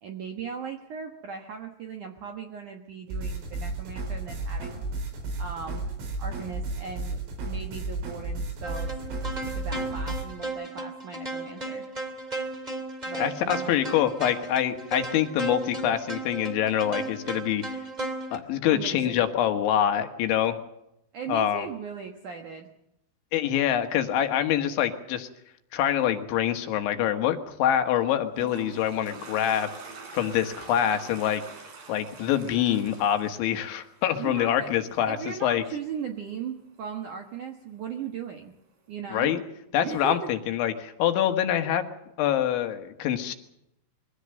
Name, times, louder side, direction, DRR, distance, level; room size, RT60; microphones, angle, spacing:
voice 1, 0.0-4.8 5.4-5.8 6.2-8.9 9.5-11.8 13.1-13.7 18.7-19.2 21.1-22.7 34.2-34.7 35.1-38.5 38.9-39.3 39.8-40.3, right 6 dB, 65° right, 3 dB, 2.0 m, -38 dB
sound 1, 3.1-10.2, right 2 dB, 85° right, 7.1 m, -33 dB
sound 2, 8.6-18.4, right 2 dB, 25° right, 0.9 m, -35 dB
voice 2, 13.2-17.6 18.3-20.6 21.3-21.7 23.3-25.3 25.7-29.7 30.1-31.4 31.9-35.6 39.1-39.4 39.7-41.9 42.2-43.3, left 10 dB, 75° left, 7 dB, 3.7 m, -25 dB
Toilet flush, 28.0-34.3, right 4 dB, 50° right, 5.1 m, -44 dB
23.5 x 17.0 x 7.7 m, 0.82 s
omnidirectional pair, 5.6 m